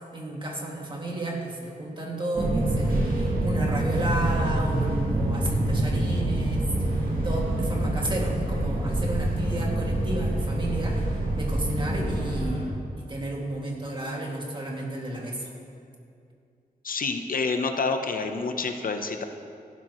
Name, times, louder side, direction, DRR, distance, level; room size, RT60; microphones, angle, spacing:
voice 1, 0.1-12.7 13.0-15.5, right 2 dB, 30° right, -2 dB, 2.3 m, -32 dB
Fixed-wing aircraft airplane, 2.3-12.7, right 1 dB, 65° right, 2.5 m, -26 dB
voice 2, 16.8-19.3, left 4 dB, 65° left, 6 dB, 0.8 m, -28 dB
17.0 x 12.0 x 3.1 m, 2.4 s
wide cardioid pair, 80°, 16 cm